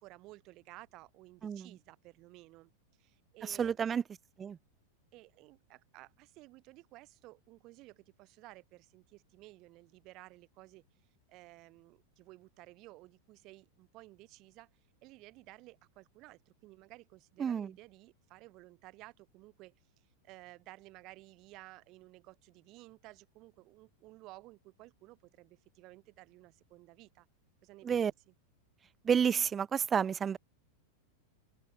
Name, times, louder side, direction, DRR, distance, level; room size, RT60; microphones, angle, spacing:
voice 1, 0.0-2.7 3.0-3.8 5.1-10.8 11.3-14.7 15.0-19.7 20.2-27.3 27.6-28.1, right 20 dB, 40° right, 1.5 m, -55 dB
voice 2, 3.4-4.0 4.4-4.6 17.4-17.7 27.8-28.1 29.0-30.4, right 7 dB, 20° right, 0.4 m, -30 dB
open air
figure-of-eight pair, 90°, 0 cm